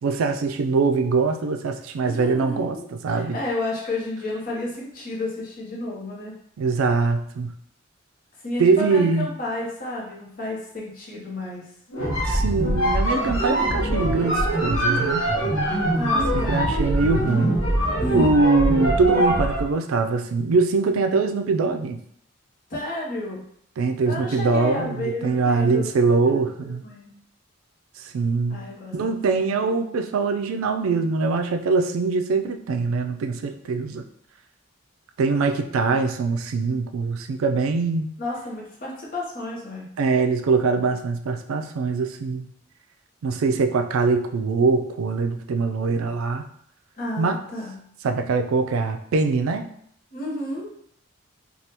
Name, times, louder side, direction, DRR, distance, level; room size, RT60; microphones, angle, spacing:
voice 1, 0.0-3.4 6.6-7.5 8.6-9.3 12.3-15.3 16.3-17.6 18.1-22.0 23.8-26.8 28.1-28.6 28.9-34.0 35.2-38.1 40.0-42.4 43.2-46.4 47.2-47.4 48.0-49.7, right 4 dB, 85° right, 6 dB, 0.4 m, -23 dB
voice 2, 2.0-6.3 8.4-11.6 15.9-16.7 18.0-18.5 22.7-23.5 24.0-25.9 26.3-26.4 26.8-27.1 28.5-29.5 38.2-39.9 47.0-47.7 50.1-50.7, left 1 dB, 40° left, -4 dB, 0.9 m, -31 dB
sound 1, 11.9-19.7, right 1 dB, 75° left, 0.9 m, -23 dB
3.4 x 2.3 x 2.8 m, 0.66 s
head